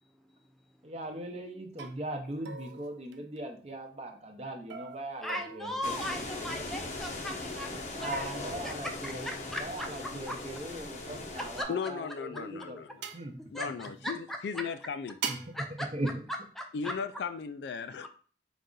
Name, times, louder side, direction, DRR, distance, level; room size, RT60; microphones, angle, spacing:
voice 1, 0.8-5.7 8.0-9.2 9.6-12.8 13.1-13.4 15.3-15.4 15.9-16.1, right 1 dB, 35° right, 0.6 m, -39 dB
sound 1, 1.1-1.4 1.8-2.0 2.4-3.8 4.7-6.9 8.1-9.5 11.0-12.3 13.0-13.3 15.2-15.6, right 6 dB, 80° right, 0.4 m, -43 dB
voice 2, 5.2-10.4 11.4-11.7 13.5-14.6 15.5-15.9 16.6-16.9 18.0-18.1, equal, ahead, 0.5 m, -38 dB
sound 2, 5.8-11.6, left 2 dB, 40° left, 0.6 m, -39 dB
voice 3, 11.7-13.0 13.5-15.2 16.7-18.1, left 6 dB, 70° left, 0.3 m, -36 dB
4.0 x 2.4 x 3.8 m
head